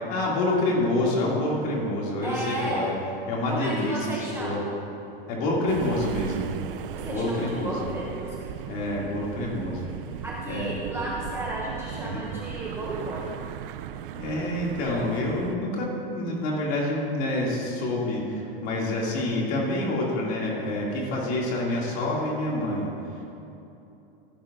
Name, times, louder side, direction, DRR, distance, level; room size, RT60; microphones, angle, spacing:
voice 1, 0.1-2.9 3.3-4.6 5.3-6.5 7.1-7.9 8.7-9.9 10.5-10.7 12.0-12.2 14.1-23.2, left 1 dB, 40° left, -3 dB, 2.4 m, -27 dB
voice 2, 2.2-2.9 3.5-4.7 6.9-8.4 10.2-13.3, right 2 dB, 10° right, -4 dB, 0.5 m, -33 dB
sound 1, 5.7-15.6, right 11 dB, 65° right, 0.5 m, -37 dB
15.0 x 10.0 x 2.5 m, 2.9 s
supercardioid pair, 160°, 29 cm